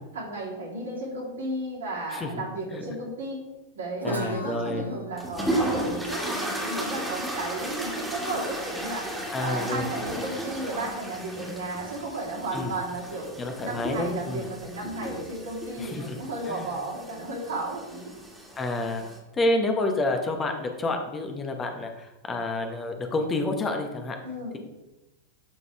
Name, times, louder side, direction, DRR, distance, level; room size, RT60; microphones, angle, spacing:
voice 1, 0.1-3.4 3.7-9.1 9.4-13.3 13.6-18.1 24.2-24.6, right 1 dB, 65° right, -4 dB, 2.8 m, -34 dB
voice 2, 2.1-2.4 2.7-2.8 4.0-4.9 9.3-9.9 12.5-12.8 13.4-14.5 15.8-16.2 16.5-16.7 18.6-19.0 19.3-24.2, left 2 dB, 20° left, 4 dB, 1.0 m, -29 dB
Guitar, 4.0-7.8, right 1 dB, 85° right, 0.9 m, -38 dB
sound 1, 5.2-19.2, right 1 dB, 5° right, 1.9 m, -34 dB
12.0 x 4.0 x 3.4 m, 1.0 s
figure-of-eight pair, 90°, 0 cm